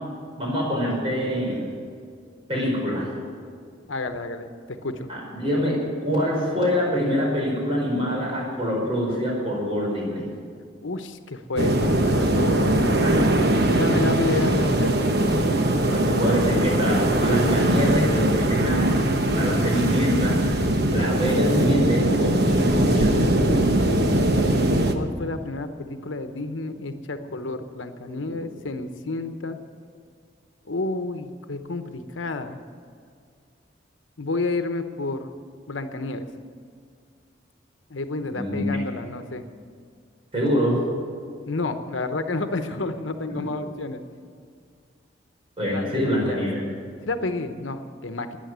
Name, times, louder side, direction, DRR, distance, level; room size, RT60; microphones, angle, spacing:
voice 1, 0.4-1.7 2.5-3.1 5.1-10.3 13.0-13.5 15.9-19.0 19.3-20.4 20.9-23.2 28.1-28.4 38.3-38.7 40.3-40.8 43.3-43.5 45.6-46.6, equal, 30° right, -3 dB, 5.1 m, -25 dB
voice 2, 3.9-5.1 10.8-12.7 13.8-15.0 23.8-24.4 24.9-29.6 30.7-32.6 34.2-35.4 35.7-36.3 37.9-39.4 41.4-44.0 45.7-46.5 47.0-48.4, left 2 dB, 80° left, 8 dB, 1.0 m, -30 dB
sound 1, 11.6-24.9, right 1 dB, 55° right, 1.1 m, -21 dB
13.0 x 10.0 x 9.5 m, 2.1 s
head